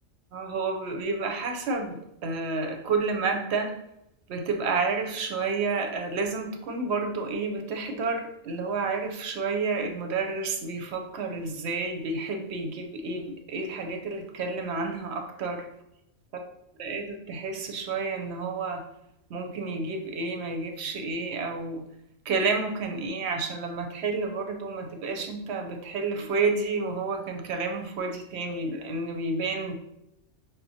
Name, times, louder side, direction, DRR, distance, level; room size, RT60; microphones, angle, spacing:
voice 1, 0.3-3.7 4.3-15.7 16.8-18.8 19.3-21.8 22.3-29.7, right 4 dB, 65° right, 4 dB, 0.8 m, -30 dB
5.7 x 2.2 x 2.6 m, 0.84 s
omnidirectional pair, 1.3 m